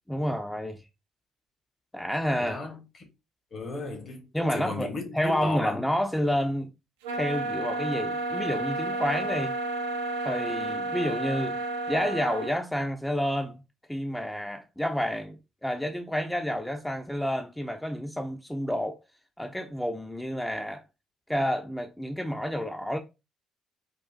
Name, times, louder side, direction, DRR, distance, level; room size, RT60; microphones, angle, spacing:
voice 1, 0.1-0.8 1.9-2.6 4.3-6.7 7.1-9.5 10.2-11.6 11.9-13.6 13.9-19.0 19.4-20.8 21.3-23.0, equal, 5° left, 0.4 m, -29 dB
voice 2, 2.4-3.1 3.5-4.3 4.5-5.8, left 2 dB, 45° left, 0.9 m, -35 dB
sound 1, 7.0-12.6, right 2 dB, 75° right, 0.3 m, -31 dB
3.6 x 2.4 x 2.4 m
figure-of-eight pair, 45°, 0 cm